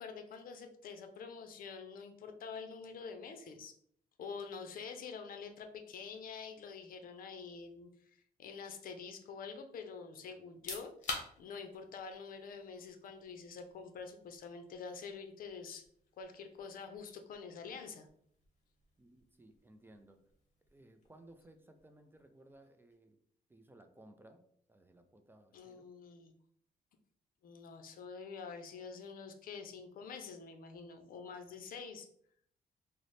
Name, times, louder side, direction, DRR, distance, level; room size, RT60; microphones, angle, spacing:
voice 1, 0.0-3.7 4.2-10.9 11.4-15.8 16.2-18.1 25.5-26.3 27.4-32.1, left 5 dB, 65° left, 7 dB, 0.5 m, -47 dB
sound 1, 10.4-23.1, left 3 dB, 50° left, 0.9 m, -51 dB
voice 2, 19.0-20.2 20.7-23.2 23.5-25.8, right 1 dB, 15° right, 7 dB, 0.3 m, -60 dB
3.9 x 2.0 x 3.2 m, 0.65 s
cardioid pair, 105°, 15 cm